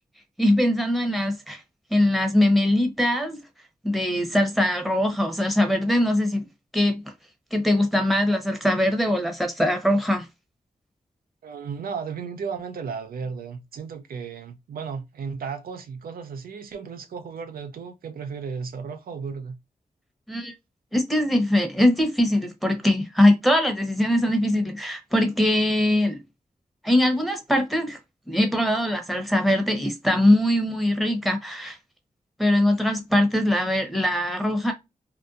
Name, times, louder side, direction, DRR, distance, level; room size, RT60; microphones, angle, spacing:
voice 1, 0.4-1.6 1.9-3.4 3.8-6.5 6.7-7.0 7.5-10.3 20.3-20.5 20.9-26.2 26.8-28.0 28.3-31.8 32.4-34.7, left 1 dB, ahead, 0.9 m, -22 dB
voice 2, 11.4-19.6, right 6 dB, 80° right, 0.4 m, -34 dB
2.7 x 2.1 x 2.4 m
cardioid pair, 40°, 15 cm